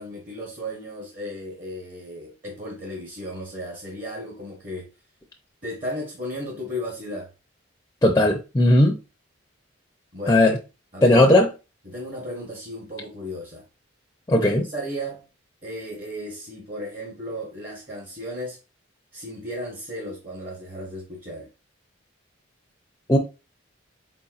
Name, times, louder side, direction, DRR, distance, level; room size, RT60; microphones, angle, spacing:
voice 1, 0.0-4.9 5.6-7.3 10.1-10.4 10.9-11.5 11.8-13.6 14.4-15.2 15.6-18.6 19.1-21.5, equal, 40° right, 1.1 m, -35 dB
voice 2, 8.0-9.0 10.3-10.6 11.0-11.5 14.3-14.6 23.1-23.2, left 1 dB, 15° left, 0.5 m, -17 dB
4.5 x 4.1 x 2.4 m
head